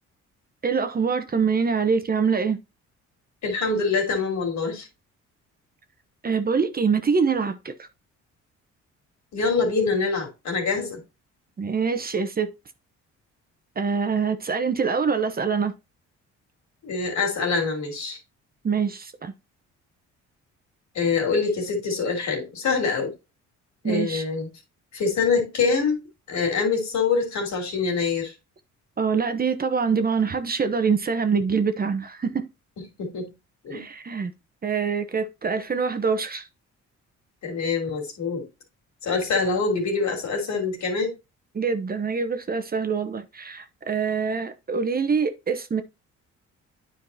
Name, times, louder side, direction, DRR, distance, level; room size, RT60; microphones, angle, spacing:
voice 1, 0.6-2.6 6.2-7.9 11.6-12.5 13.8-15.7 18.6-19.3 23.8-24.2 29.0-32.5 33.7-34.3 34.6-36.5 41.5-45.8, right 5 dB, 30° right, 0.8 m, -24 dB
voice 2, 3.4-4.9 9.3-11.0 16.8-18.2 20.9-23.1 23.8-24.5 24.9-26.0 26.3-28.3 33.0-33.3 33.6-33.8 37.4-38.4 39.0-41.1, left 4 dB, 70° left, 3.2 m, -25 dB
9.6 x 4.7 x 2.7 m
cardioid pair, 90°, 30 cm